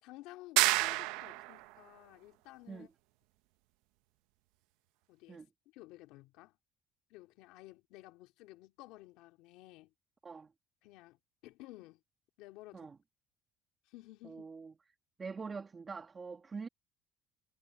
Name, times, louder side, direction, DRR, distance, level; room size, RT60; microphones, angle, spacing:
voice 1, 0.0-2.9 5.1-5.4 5.7-6.5 7.1-9.9 10.8-12.0 12.4-12.9 13.9-14.5, left 18 dB, 80° left, 3.2 m, -54 dB
sound 1, 0.6-1.6, right 19 dB, 85° right, 0.8 m, -29 dB
voice 2, 14.2-14.7 15.2-16.7, right 5 dB, 25° right, 2.0 m, -44 dB
cardioid pair, 120°, 0 cm